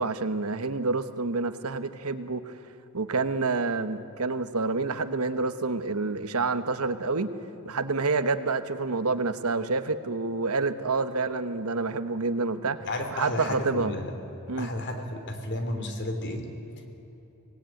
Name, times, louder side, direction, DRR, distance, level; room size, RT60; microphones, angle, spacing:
voice 1, 0.0-2.5 2.9-7.3 7.6-13.9 14.5-14.7, right 3 dB, 75° right, 11 dB, 1.1 m, -28 dB
voice 2, 12.9-14.1 14.6-16.5, left 1 dB, 55° left, 5 dB, 3.0 m, -32 dB
24.5 x 18.5 x 9.2 m, 3.0 s
head